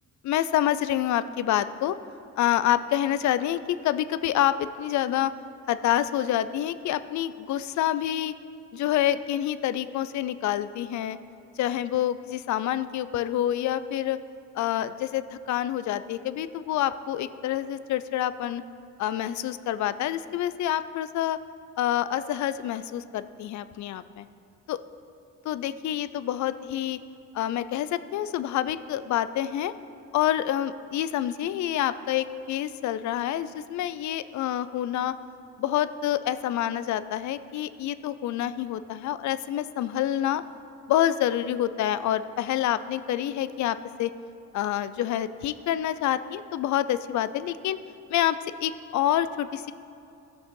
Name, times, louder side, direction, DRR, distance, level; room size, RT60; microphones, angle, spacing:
voice 1, 0.2-2.0 2.4-5.3 5.7-8.3 8.7-11.2 11.6-14.2 14.5-18.6 19.0-21.4 21.8-24.3 24.7-24.8 25.5-27.0 27.3-29.7 30.1-35.1 35.6-40.4 40.9-44.1 44.5-47.8 48.1-49.7, left 12 dB, 70° left, 14 dB, 0.5 m, -27 dB
15.5 x 6.3 x 3.8 m, 2.7 s
cardioid pair, 90°, 30 cm